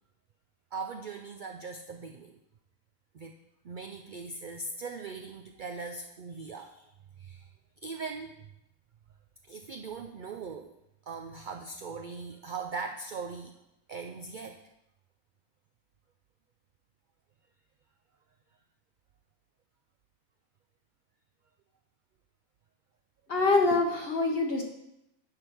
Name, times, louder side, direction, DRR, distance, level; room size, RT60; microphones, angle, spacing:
voice 1, 0.7-2.4 3.1-3.4 3.6-6.9 7.2-7.5 7.8-8.5 9.5-10.7 11.1-13.5 13.9-14.6, right 4 dB, 70° right, 4 dB, 0.4 m, -40 dB
voice 2, 23.3-24.6, left 3 dB, 50° left, 2 dB, 0.9 m, -25 dB
10.0 x 3.6 x 5.8 m, 0.85 s
omnidirectional pair, 1.4 m